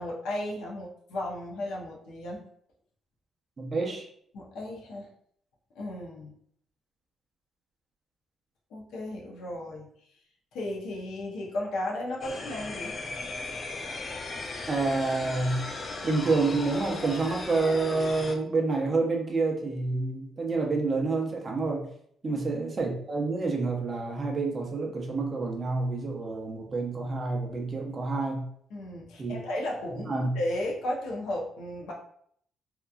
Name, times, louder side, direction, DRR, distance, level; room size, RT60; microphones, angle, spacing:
voice 1, 0.0-2.4 4.3-5.1 5.7-6.3 8.7-9.9 10.5-13.0 22.2-22.4 28.7-31.9, left 1 dB, 85° left, -2 dB, 0.7 m, -34 dB
voice 2, 3.6-4.0 14.7-15.6 16.0-21.9 22.2-28.5 29.2-29.4 29.9-30.3, right 3 dB, 30° right, 0 dB, 0.6 m, -28 dB
sound 1, 12.2-18.4, left 3 dB, 35° left, 0.4 m, -37 dB
2.9 x 2.3 x 2.4 m, 0.66 s
cardioid pair, 130°, 0 cm